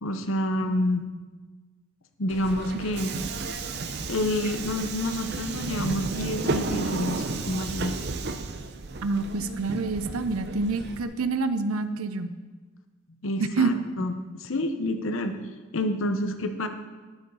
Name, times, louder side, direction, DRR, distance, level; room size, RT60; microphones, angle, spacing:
voice 1, 0.0-1.1 2.2-3.1 4.1-7.9 13.2-15.4 15.7-16.7, left 1 dB, 70° left, 8 dB, 0.9 m, -28 dB
Subway metro underground, 2.3-11.0, right 3 dB, 50° right, 0.7 m, -33 dB
voice 2, 9.0-12.3 13.4-13.8, right 3 dB, 85° right, 11 dB, 0.6 m, -27 dB
11.5 x 7.0 x 5.5 m, 1.3 s
head